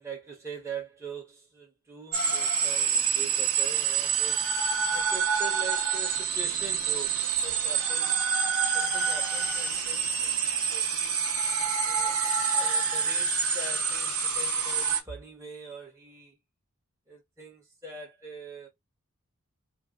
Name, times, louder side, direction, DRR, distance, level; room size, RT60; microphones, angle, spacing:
voice 1, 0.0-4.5 4.9-8.3 8.7-11.2 11.8-12.2 12.5-16.4 17.1-18.7, right 3 dB, 15° right, 1.0 m, -43 dB
sound 1, 2.1-15.0, right 6 dB, 75° right, 0.8 m, -27 dB
2.7 x 2.2 x 3.4 m
head